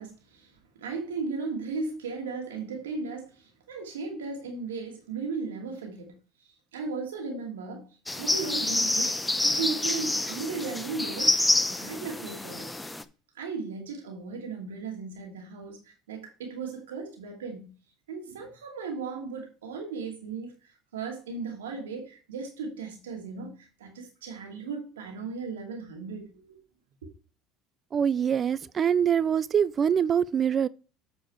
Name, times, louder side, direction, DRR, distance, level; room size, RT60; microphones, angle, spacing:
voice 1, 0.0-6.2 6.7-7.9 8.2-11.4 11.7-12.7 13.3-17.7 18.1-26.6 27.0-27.1, right 4 dB, 90° right, 2.4 m, -36 dB
sound 1, 8.1-13.0, left 2 dB, 10° left, 0.7 m, -27 dB
voice 2, 27.9-30.7, right 8 dB, 40° right, 0.4 m, -24 dB
8.4 x 4.7 x 4.5 m
hypercardioid pair, 75°, 0 cm